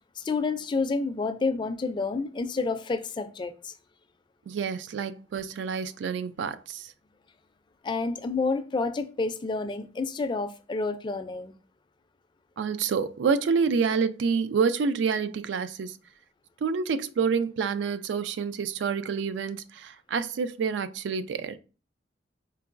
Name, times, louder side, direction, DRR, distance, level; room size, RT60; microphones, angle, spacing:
voice 1, 0.2-3.7 7.8-11.5, left 3 dB, 25° left, 0.3 m, -29 dB
voice 2, 4.5-6.9 12.6-16.0 16.6-21.6, right 5 dB, 85° right, 0.3 m, -28 dB
4.5 x 2.9 x 2.5 m
head